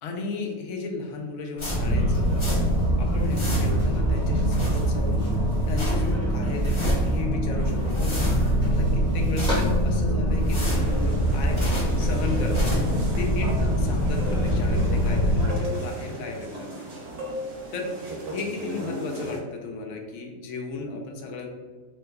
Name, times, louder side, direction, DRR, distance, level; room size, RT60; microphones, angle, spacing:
voice 1, 0.0-2.5 3.0-11.6 12.0-12.7 13.2-16.7 17.7-21.5, left 3 dB, 70° left, 2 dB, 0.8 m, -34 dB
sound 1, 1.6-2.9 3.1-4.0 4.3-5.2 5.5-6.1 6.5-7.2 7.6-8.7 9.1-9.9 10.3-12.0 12.4-13.0, left 1 dB, 35° left, 0.5 m, -32 dB
sound 2, 1.7-15.4, equal, 5° left, 1.0 m, -24 dB
sound 3, 10.6-19.4, right 1 dB, 55° right, 1.0 m, -36 dB
3.0 x 2.2 x 3.4 m, 1.4 s
omnidirectional pair, 1.5 m